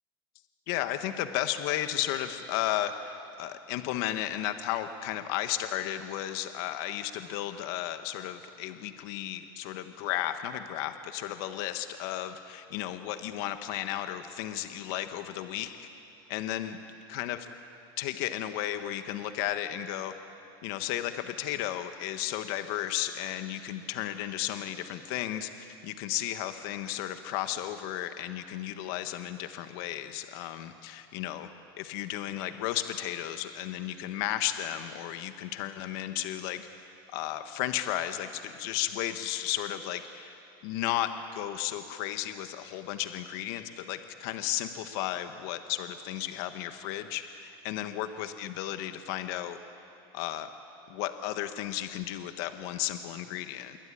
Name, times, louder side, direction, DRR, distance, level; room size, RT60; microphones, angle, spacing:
voice 1, 0.7-15.7 16.3-16.8 17.1-17.4 18.0-20.1 20.6-31.5 31.8-36.7 37.1-49.6 50.1-50.5 50.9-53.8, left 12 dB, 60° left, 8 dB, 1.4 m, -34 dB
26.5 x 23.0 x 9.8 m, 2.7 s
supercardioid pair, 145°, 13 cm